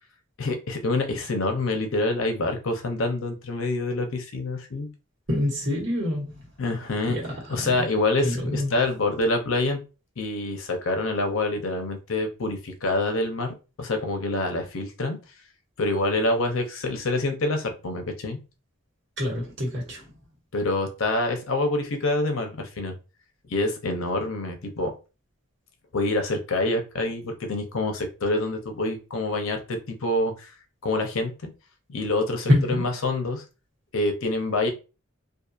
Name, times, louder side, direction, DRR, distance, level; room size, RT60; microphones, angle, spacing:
voice 1, 0.4-4.9 6.6-7.2 7.5-9.8 10.2-15.2 15.8-18.4 20.5-22.9 23.5-24.9 25.9-30.5 30.8-31.5 31.9-33.4 33.9-34.7, left 2 dB, 75° left, 0.6 m, -26 dB
voice 2, 5.3-6.5 7.1-7.8 8.2-8.8 19.2-20.1 32.5-32.9, left 1 dB, 55° right, 1.3 m, -26 dB
2.7 x 2.5 x 2.4 m
head